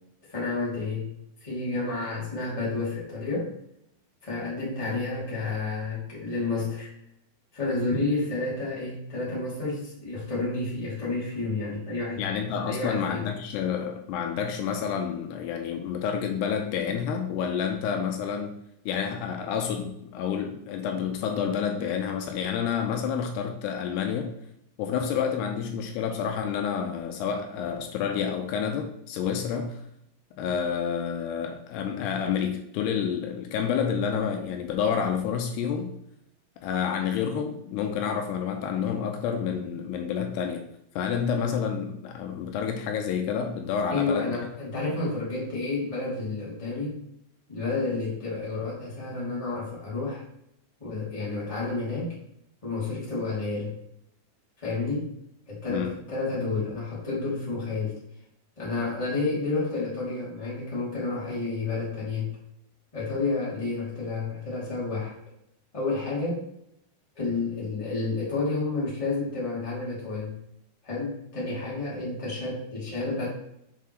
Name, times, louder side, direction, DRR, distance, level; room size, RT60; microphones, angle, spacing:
voice 1, 0.3-1.1 1.4-3.5 4.2-6.9 7.5-12.2 12.7-13.2 43.9-47.0 47.5-50.2 50.8-52.1 52.6-53.8 54.6-55.1 55.5-58.0 58.6-62.3 62.9-65.1 65.7-66.4 67.1-70.3 70.8-73.3, left 3 dB, 10° left, -7 dB, 2.0 m, -30 dB
voice 2, 12.2-18.6 18.9-24.3 24.8-29.8 30.4-35.9 36.6-40.6 41.0-44.3 55.7-55.9, left 7 dB, 85° left, 4 dB, 2.7 m, -29 dB
6.9 x 5.7 x 3.1 m, 0.76 s
omnidirectional pair, 4.8 m